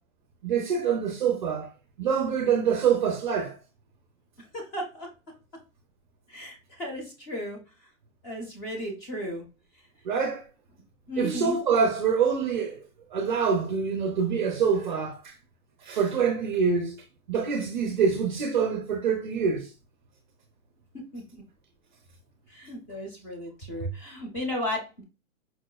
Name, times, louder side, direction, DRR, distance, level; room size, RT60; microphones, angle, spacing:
voice 1, 0.4-1.7 2.0-3.6 10.0-10.4 11.2-12.8 13.1-15.3 15.8-17.0 17.3-19.7, right 6 dB, 35° right, 0.5 m, -25 dB
voice 2, 4.4-5.1 6.3-7.6 8.2-9.5 11.1-11.6 21.1-21.4 22.5-25.0, equal, 20° left, 0.7 m, -34 dB
4.7 x 2.0 x 2.2 m
hypercardioid pair, 140°, 43 cm